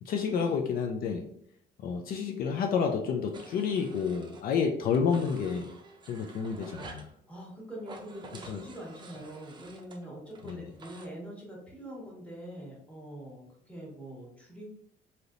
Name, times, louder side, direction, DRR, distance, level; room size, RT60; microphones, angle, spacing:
voice 1, 0.0-1.2 1.8-5.7 6.1-7.1 8.5-8.6 10.4-10.6, left 6 dB, 60° left, 3 dB, 0.4 m, -29 dB
sound 1, 3.3-4.6 4.9-7.1 7.8-11.1, right 3 dB, 25° right, 0.5 m, -49 dB
voice 2, 7.3-14.7, right 1 dB, 5° left, -4 dB, 1.3 m, -44 dB
3.3 x 2.8 x 2.5 m, 0.69 s
cardioid pair, 110°, 17 cm